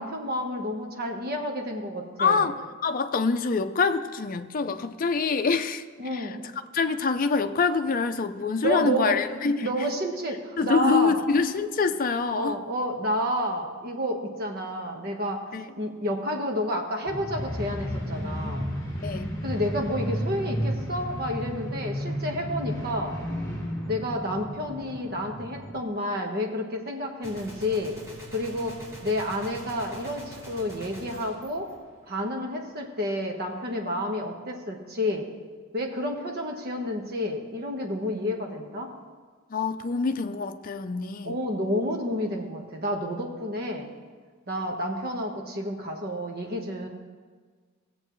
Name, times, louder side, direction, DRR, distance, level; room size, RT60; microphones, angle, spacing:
voice 1, 0.0-2.5 6.0-6.4 8.6-9.2 9.6-11.2 12.3-15.4 15.8-18.7 19.4-23.2 23.9-28.0 28.3-28.8 29.0-31.7 32.1-35.3 35.7-38.9 41.2-43.9 44.5-46.9, equal, 50° right, 2 dB, 1.3 m, -30 dB
voice 2, 2.2-2.6 2.8-5.8 6.1-6.4 6.7-9.7 10.6-12.6 15.5-15.7 19.0-19.3 39.5-41.4, left 4 dB, 45° left, 8 dB, 0.5 m, -25 dB
sound 1, 17.1-25.8, equal, 20° left, 1.8 m, -33 dB
Gunshot gunfire, 27.2-32.4, left 1 dB, 15° right, 2.6 m, -45 dB
17.5 x 7.6 x 3.1 m, 1.5 s
head